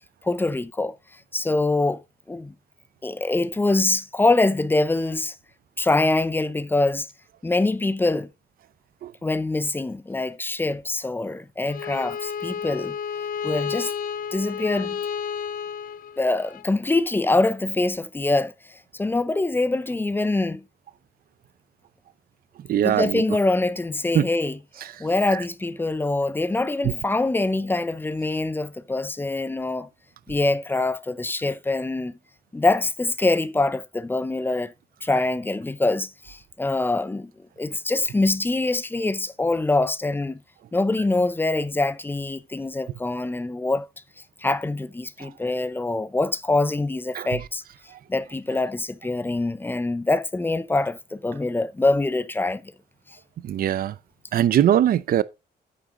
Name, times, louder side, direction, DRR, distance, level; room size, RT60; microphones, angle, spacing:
voice 1, 0.2-0.9 1.3-2.0 2.3-2.5 3.0-5.4 5.8-7.1 7.4-8.3 9.2-12.9 13.4-13.9 14.3-15.0 16.2-18.5 18.9-20.6 22.8-24.6 25.0-29.9 30.3-32.1 32.5-34.7 35.0-37.3 37.6-40.4 40.7-43.9 44.4-47.6 48.1-52.7, left 2 dB, 10° left, 0.6 m, -24 dB
Bowed string instrument, 11.7-16.6, left 7 dB, 55° left, 0.5 m, -31 dB
voice 2, 22.7-23.2 24.1-24.3 45.2-45.3 47.1-47.3 47.9-48.0 53.4-53.9 54.3-55.2, right 11 dB, 60° right, 0.5 m, -21 dB
8.7 x 7.8 x 3.7 m
cardioid pair, 135°, 17 cm